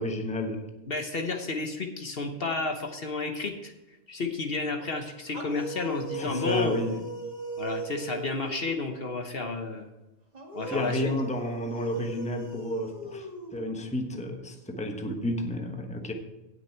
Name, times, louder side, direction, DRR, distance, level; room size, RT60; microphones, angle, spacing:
voice 1, 0.0-0.7 6.1-7.0 10.7-13.3 13.5-16.1, left 1 dB, 5° left, 4 dB, 1.0 m, -31 dB
voice 2, 0.9-3.7 4.1-6.7 7.6-9.9 10.5-11.0, left 3 dB, 50° left, 5 dB, 1.2 m, -31 dB
sound 1, 5.3-9.0 10.3-14.0, right 3 dB, 30° right, 1.7 m, -39 dB
17.0 x 6.3 x 4.5 m, 1.0 s
omnidirectional pair, 1.3 m